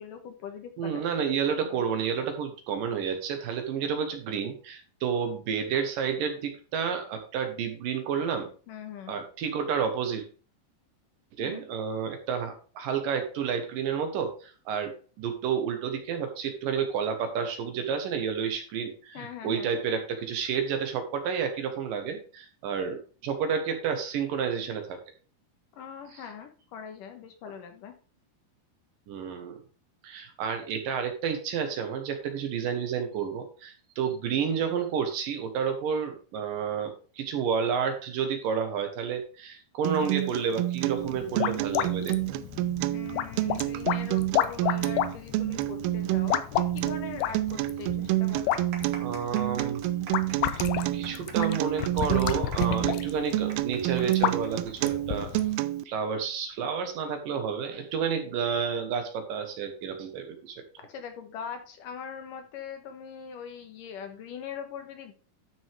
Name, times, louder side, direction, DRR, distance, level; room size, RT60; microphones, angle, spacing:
voice 1, 0.0-1.1 1.7-1.8 8.7-9.1 11.4-11.7 19.1-19.7 25.8-27.9 42.9-48.6 60.8-65.1, left 7 dB, 70° left, 6 dB, 2.5 m, -41 dB
voice 2, 0.8-8.5 9.1-10.2 11.4-23.0 23.2-25.0 29.1-29.6 30.0-42.4 49.0-49.8 50.5-50.7 50.9-55.3 55.9-60.6, right 7 dB, 70° right, 6 dB, 2.8 m, -30 dB
Acoustic guitar, 39.8-55.8, right 16 dB, 85° right, 2.5 m, -29 dB
sound 1, 41.0-55.6, left 12 dB, 85° left, 2.6 m, -32 dB
sound 2, 48.3-55.4 55.7-55.8 56.6-56.8, right 5 dB, 50° right, 1.4 m, -45 dB
12.0 x 6.2 x 3.5 m, 0.37 s
omnidirectional pair, 4.3 m